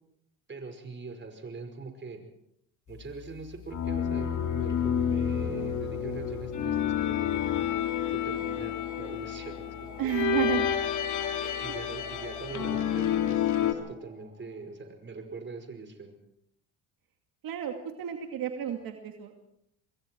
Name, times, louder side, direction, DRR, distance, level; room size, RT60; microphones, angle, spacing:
voice 1, 0.5-2.2 2.9-7.5 8.1-10.2 11.6-16.1, right 4 dB, 30° right, 6 dB, 5.3 m, -42 dB
sound 1, 3.7-13.7, left 9 dB, 55° left, 2.7 m, -29 dB
sound 2, 7.1-14.8, equal, 15° right, 6.8 m, -52 dB
voice 2, 10.0-10.7 11.4-11.7 17.4-19.4, right 9 dB, 65° right, 4 dB, 2.5 m, -32 dB
26.5 x 21.5 x 4.6 m, 0.75 s
supercardioid pair, 85°, 37 cm